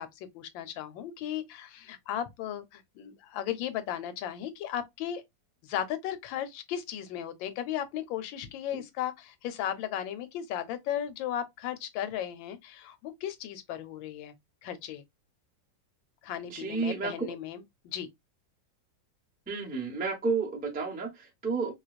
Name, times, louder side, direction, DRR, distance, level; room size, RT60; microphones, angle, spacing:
voice 1, 0.0-5.2 5.6-14.3 14.6-15.0 16.2-18.1, left 10 dB, 90° left, 1.4 m, -36 dB
voice 2, 16.5-17.3 19.5-21.7, right 4 dB, 10° right, 0.4 m, -31 dB
3.1 x 3.0 x 2.3 m
omnidirectional pair, 2.0 m